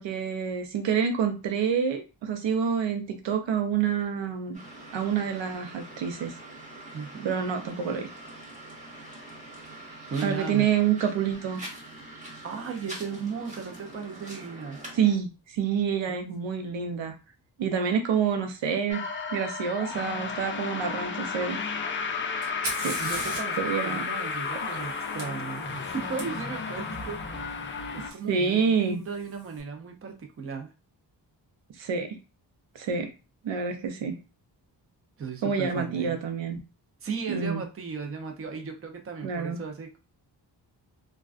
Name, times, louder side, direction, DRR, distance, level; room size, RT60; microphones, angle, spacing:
voice 1, 0.0-4.6 4.9-6.3 7.2-8.1 10.2-11.6 14.9-17.1 17.6-19.0 19.3-21.6 22.8-23.0 23.6-24.1 24.6-24.7 28.3-29.0 31.8-32.1 32.7-33.1 33.4-34.2 35.4-36.6 37.3-37.6 39.2-39.6, right 7 dB, 90° right, 5 dB, 0.6 m, -27 dB
sound 1, 4.5-15.1, right 1 dB, 15° right, 0.9 m, -44 dB
voice 2, 6.9-7.3 10.1-10.7 12.4-14.8 16.1-16.2 23.0-27.4 27.9-30.7 35.2-36.2 37.0-40.0, right 5 dB, 30° right, 3 dB, 0.5 m, -36 dB
sound 2, 18.9-28.1, left 5 dB, 30° left, 0.4 m, -33 dB
Fire, 22.4-26.2 28.1-28.2 29.0-29.4, right 2 dB, 65° right, 1.1 m, -39 dB
2.3 x 2.2 x 2.4 m, 0.30 s
cardioid pair, 65°, 44 cm